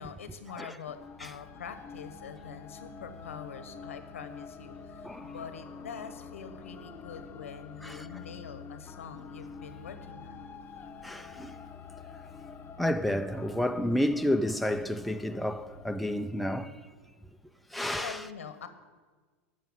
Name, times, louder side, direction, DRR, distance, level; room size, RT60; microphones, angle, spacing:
voice 1, 0.0-10.5 17.9-18.7, left 7 dB, 85° left, 1.2 m, -44 dB
sound 1, 0.9-17.1, left 5 dB, 30° left, 0.9 m, -47 dB
voice 2, 11.0-11.6 12.8-16.8 17.7-18.2, left 1 dB, ahead, 0.6 m, -30 dB
12.5 x 6.6 x 9.1 m
hypercardioid pair, 100°, 7 cm